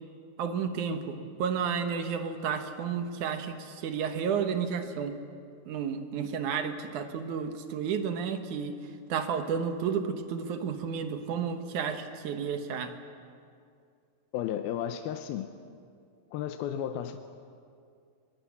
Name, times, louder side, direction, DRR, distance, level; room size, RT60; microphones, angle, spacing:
voice 1, 0.4-5.1 5.7-8.8 9.1-12.9, right 6 dB, 65° right, 7 dB, 2.4 m, -32 dB
voice 2, 14.3-15.5 16.3-17.2, left 10 dB, 85° left, 7 dB, 2.7 m, -33 dB
21.0 x 20.5 x 8.5 m, 2.4 s
omnidirectional pair, 4.2 m